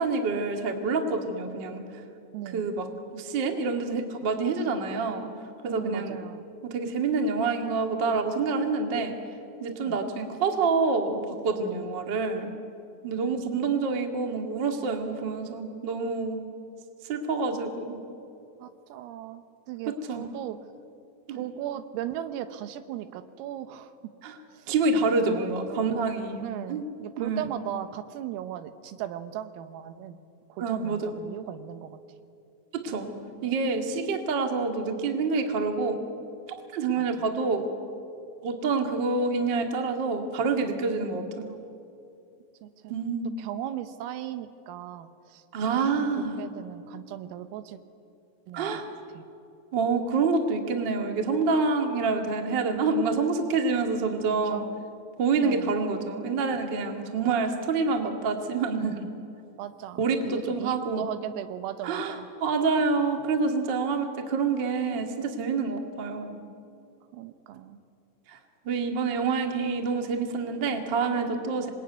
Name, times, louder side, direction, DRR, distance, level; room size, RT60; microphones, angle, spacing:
voice 1, 0.0-1.8 2.5-5.3 5.6-6.2 6.6-9.1 9.6-12.5 13.0-16.4 17.1-18.0 19.9-20.2 21.3-21.4 24.2-24.3 24.7-26.8 27.2-27.5 30.6-31.1 32.7-33.1 33.4-36.0 36.5-37.7 38.4-41.6 42.9-43.3 45.5-46.4 48.5-48.8 49.7-54.6 55.2-59.1 60.0-61.0 61.8-62.1 62.4-66.4 68.3-68.4 68.6-71.7, right 4 dB, 65° right, 4 dB, 1.1 m, -27 dB
voice 2, 2.3-2.7 5.6-6.5 9.8-10.0 13.1-13.8 18.6-20.6 21.3-24.1 24.5-24.7 25.2-26.1 26.4-30.2 30.5-32.0 37.0-37.2 42.6-42.9 43.4-45.4 46.2-47.8 48.5-48.8 49.2-49.3 54.5-54.8 55.4-55.7 59.6-62.3 67.1-67.8, right 12 dB, 85° right, 10 dB, 3.8 m, -37 dB
27.0 x 21.5 x 9.4 m, 2.6 s
omnidirectional pair, 5.9 m